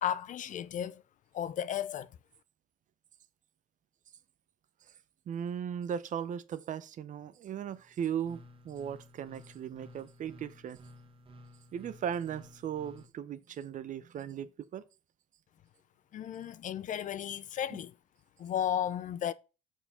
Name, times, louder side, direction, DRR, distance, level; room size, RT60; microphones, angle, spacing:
voice 1, 0.0-1.0 1.3-2.1 16.1-17.9 18.4-19.3, left 10 dB, 50° left, 0.5 m, -34 dB
voice 2, 5.3-10.8 11.7-14.8 17.7-17.8, right 8 dB, 50° right, 0.7 m, -37 dB
sound 1, 7.6-13.1, equal, 30° right, 1.4 m, -54 dB
6.6 x 4.6 x 5.6 m
cardioid pair, 110°, 17 cm